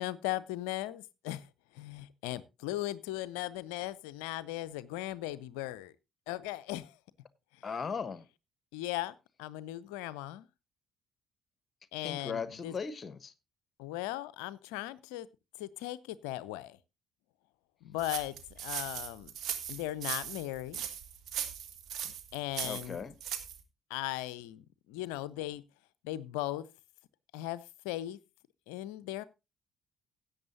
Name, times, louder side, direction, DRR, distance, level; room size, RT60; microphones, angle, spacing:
voice 1, 0.0-1.4 1.7-5.9 6.3-7.0 8.7-9.1 9.4-10.5 11.9-12.7 13.8-15.3 15.6-16.8 17.8-18.3 18.6-19.3 19.7-20.9 22.3-23.0 23.9-24.6 24.9-25.6 26.0-26.7 27.3-28.2 28.7-29.2, left 15 dB, 70° left, 0.5 m, -37 dB
voice 2, 7.6-8.2 12.0-13.3 22.6-23.1, left 5 dB, 35° left, 1.1 m, -38 dB
sound 1, 18.0-23.6, right 9 dB, 55° right, 1.4 m, -39 dB
17.0 x 8.0 x 2.7 m
figure-of-eight pair, 45°, 0 cm